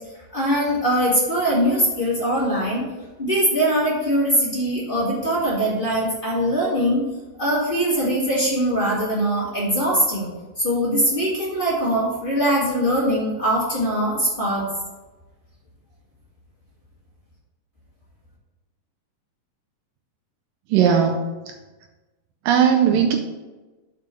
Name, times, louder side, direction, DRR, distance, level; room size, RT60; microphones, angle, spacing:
voice 1, 0.3-2.8 3.2-7.0 7.4-10.3 10.6-14.6, equal, 20° left, -7 dB, 1.4 m, -21 dB
voice 2, 20.7-21.5 22.5-23.2, right 7 dB, 80° right, 3 dB, 2.3 m, -18 dB
6.8 x 4.9 x 6.0 m, 1.2 s
omnidirectional pair, 4.1 m